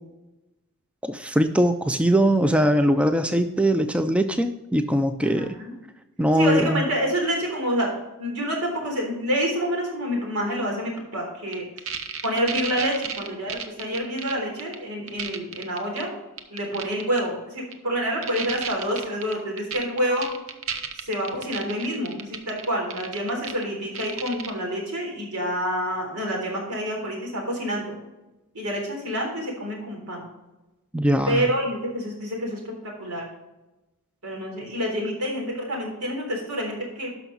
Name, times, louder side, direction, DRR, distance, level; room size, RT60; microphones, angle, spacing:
voice 1, 1.0-5.6 6.2-6.8 30.9-31.5, right 1 dB, 5° right, 8 dB, 0.3 m, -21 dB
voice 2, 5.2-5.7 6.4-7.9 8.2-11.6 12.2-16.1 16.5-20.3 21.0-28.0 28.5-30.3 31.3-32.6 33.0-33.2 34.2-37.1, equal, 90° right, 0 dB, 3.7 m, -27 dB
sound 1, 11.5-14.3 14.6-14.8 15.1-16.0 16.4-17.2 17.7-17.8 18.2-23.6 23.9-24.5, right 7 dB, 65° right, 0.9 m, -33 dB
12.0 x 5.8 x 4.0 m, 1.0 s
head